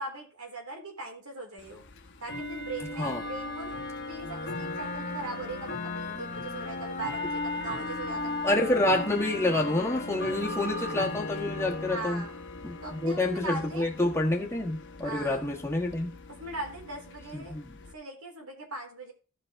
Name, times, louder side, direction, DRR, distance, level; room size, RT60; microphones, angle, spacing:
voice 1, 0.0-1.8 2.2-8.3 10.2-10.7 11.9-12.4 12.8-13.9 15.0-15.6 16.3-17.6 17.9-19.1, right 2 dB, 90° right, 1 dB, 3.6 m, -40 dB
Bell / Tick-tock, 1.6-17.9, left 2 dB, 60° left, 1.2 m, -40 dB
Wind instrument woodwind instrument, 4.2-12.1, left 3 dB, 35° left, 1.5 m, -37 dB
voice 2, 8.4-12.2 12.6-16.1 17.3-17.7, left 1 dB, 10° left, 0 dB, 1.5 m, -28 dB
15.0 x 5.2 x 3.6 m, 0.33 s
head